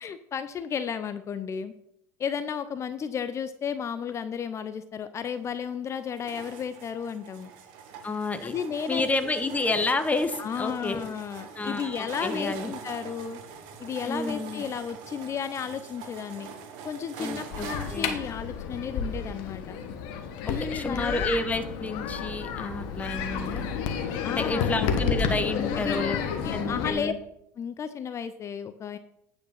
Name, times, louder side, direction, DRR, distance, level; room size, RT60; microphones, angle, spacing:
voice 1, 0.0-1.7 2.2-7.5 8.4-9.1 10.4-13.4 13.8-16.5 16.8-19.8 20.4-21.3 24.2-24.7 25.5-27.1 27.6-29.0, left 7 dB, 35° left, 12 dB, 0.6 m, -33 dB
sound 1, 5.3-18.1, right 6 dB, 65° right, 1.4 m, -43 dB
voice 2, 8.0-8.5 8.9-11.0 11.5-12.7 14.1-14.6 17.2-18.2 20.4-23.6 24.3-26.2 26.5-27.2, left 2 dB, 15° left, 9 dB, 1.1 m, -30 dB
sound 2, 17.5-26.9, left 6 dB, 60° left, 1.2 m, -31 dB
9.2 x 5.3 x 5.6 m, 0.77 s
hypercardioid pair, 75°, 8 cm